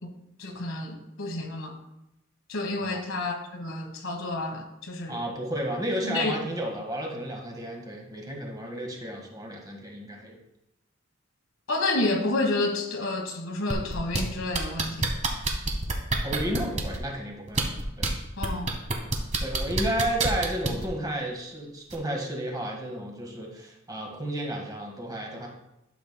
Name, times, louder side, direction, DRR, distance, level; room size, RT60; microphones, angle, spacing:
voice 1, 0.4-1.7 2.5-5.2 6.0-6.4 11.7-15.1 18.4-18.7, left 2 dB, 80° left, 4 dB, 1.2 m, -30 dB
voice 2, 5.1-10.4 16.2-17.6 18.0-18.1 19.4-25.5, right 1 dB, 20° right, 0 dB, 1.6 m, -32 dB
sound 1, 13.7-14.2 14.5-17.0 17.5-18.1 18.4-20.9 21.9-22.0, right 3 dB, 35° right, 1.1 m, -27 dB
11.5 x 7.1 x 2.2 m, 0.87 s
head